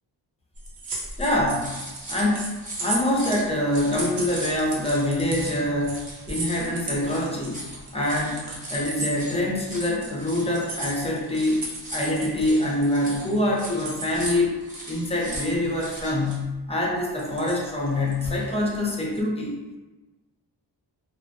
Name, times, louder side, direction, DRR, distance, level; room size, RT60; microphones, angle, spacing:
sound 1, 0.5-10.1 10.5-14.2 14.9-15.6 16.0-16.2 17.0-19.2, right 2 dB, 65° right, 0.7 m, -35 dB
voice 1, 1.2-1.7 2.1-2.5 2.8-6.0 6.3-7.6 7.9-8.4 8.7-11.6 11.9-14.5 14.9-19.6, left 1 dB, 15° left, -3 dB, 0.6 m, -25 dB
sound 2, 1.2-16.4, right 1 dB, 20° right, 1.1 m, -39 dB
2.5 x 2.2 x 2.6 m, 1.1 s
cardioid pair, 75°, 43 cm